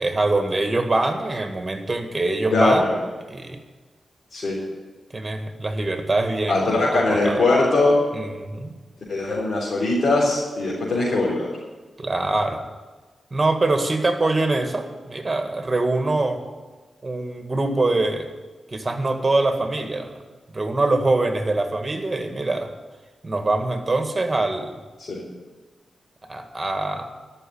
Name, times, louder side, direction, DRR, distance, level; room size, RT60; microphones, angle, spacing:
voice 1, 0.0-2.9 3.3-3.6 5.1-7.4 8.1-8.7 12.0-12.6 13.3-16.4 17.0-18.3 18.7-20.1 20.5-22.7 23.2-24.8 26.3-27.1, right 2 dB, 35° right, 6 dB, 1.9 m, -24 dB
voice 2, 2.5-3.0 4.3-4.6 6.5-8.0 9.1-11.5 25.1-25.2, left 2 dB, 65° left, -6 dB, 3.9 m, -20 dB
13.5 x 6.4 x 10.0 m, 1.3 s
cardioid pair, 50°, 0 cm